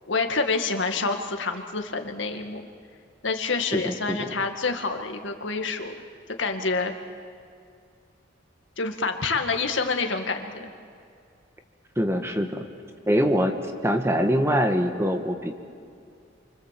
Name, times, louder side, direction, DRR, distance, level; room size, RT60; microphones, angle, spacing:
voice 1, 0.1-2.6 3.2-5.9 6.4-6.9 8.8-10.7, left 4 dB, 75° left, 5 dB, 1.9 m, -27 dB
voice 2, 3.7-4.2 12.0-12.6 13.1-13.6 13.8-15.5, equal, 15° right, 5 dB, 1.4 m, -23 dB
28.5 x 24.5 x 7.5 m, 2.4 s
head